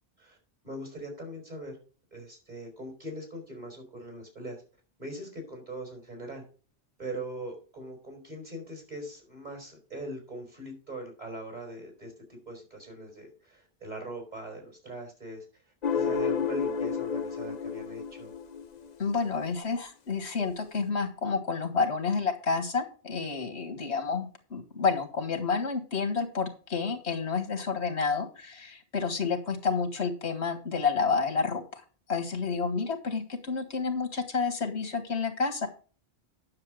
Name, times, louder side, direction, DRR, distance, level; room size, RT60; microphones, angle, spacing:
voice 1, 0.6-1.8 2.1-4.6 5.0-6.4 7.0-18.3, right 1 dB, 40° right, 2 dB, 4.2 m, -41 dB
sound 1, 15.8-19.2, left 6 dB, 45° left, 0.8 m, -31 dB
voice 2, 19.0-31.8 32.1-35.7, left 5 dB, 90° left, 6 dB, 2.0 m, -30 dB
9.7 x 6.9 x 4.9 m, 0.38 s
omnidirectional pair, 1.1 m